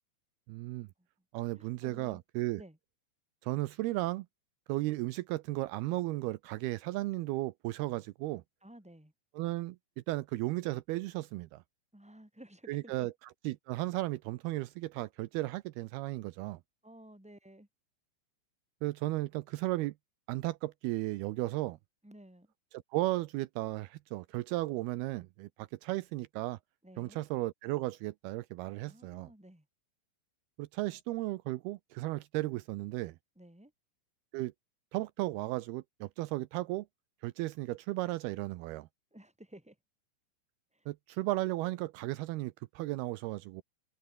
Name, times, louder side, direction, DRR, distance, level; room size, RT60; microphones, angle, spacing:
voice 1, 0.5-0.9 1.3-2.6 3.4-4.3 4.7-8.4 9.4-9.8 10.1-11.6 12.7-13.1 13.4-16.6 18.8-19.9 20.3-21.8 22.9-26.6 27.0-29.3 30.6-33.2 34.3-34.5 34.9-36.9 37.2-38.9 40.9-43.6, right 19 dB, 90° right, 2.2 m, -35 dB
voice 2, 1.5-2.2 2.6-2.8 8.6-9.1 11.9-13.1 16.8-17.7 22.0-22.5 26.8-27.2 28.8-29.6 33.3-33.7 39.1-39.8 40.7-40.9, right 1 dB, ahead, 4.6 m, -54 dB
omnidirectional pair, 5.4 m